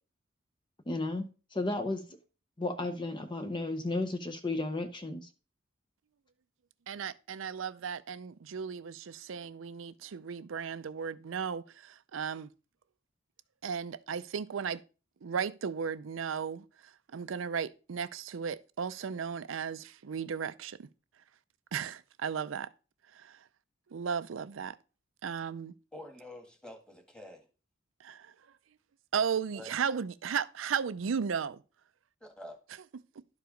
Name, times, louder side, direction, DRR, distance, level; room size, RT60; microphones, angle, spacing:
voice 1, 0.9-1.3 1.5-2.0 2.6-5.3, left 2 dB, 25° left, 0.6 m, -33 dB
voice 2, 6.9-12.5 13.6-14.8 15.2-16.6 17.1-20.9 21.7-22.7 23.3-23.4 23.9-24.8 25.2-25.7 28.0-28.3 29.1-31.6, right 6 dB, 80° right, 0.5 m, -35 dB
voice 3, 25.9-27.5 29.5-29.7 32.2-32.6, left 1 dB, 5° left, 1.8 m, -47 dB
11.5 x 4.8 x 5.1 m
head